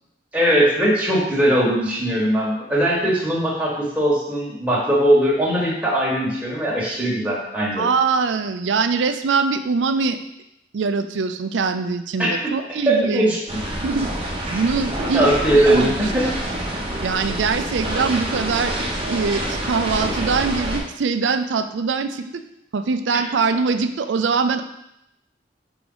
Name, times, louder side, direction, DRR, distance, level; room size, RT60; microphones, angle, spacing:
voice 1, 0.3-7.9 12.2-12.6 12.9-13.4 15.1-16.3, right 1 dB, 10° right, -6 dB, 1.4 m, -20 dB
voice 2, 7.8-10.2 10.7-13.4 13.8-14.1 14.5-15.9 17.0-18.7 19.1-22.4 22.7-24.6, right 4 dB, 85° right, 9 dB, 0.4 m, -22 dB
sound 1, 13.5-20.8, right 1 dB, 30° right, 1.0 m, -27 dB
4.9 x 4.9 x 3.9 m, 0.83 s
head